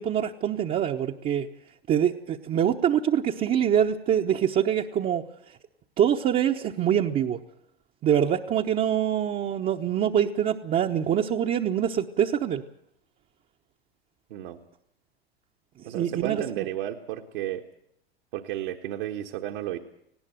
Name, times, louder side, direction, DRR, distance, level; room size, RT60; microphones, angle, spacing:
voice 1, 0.0-1.5 1.9-5.2 6.0-7.4 8.0-12.6 15.8-16.6, right 9 dB, 30° right, 1 dB, 1.0 m, -25 dB
voice 2, 15.8-17.6 18.3-19.8, right 12 dB, 60° right, 3 dB, 1.4 m, -33 dB
18.5 x 17.5 x 9.1 m, 0.76 s
figure-of-eight pair, 90°, 30 cm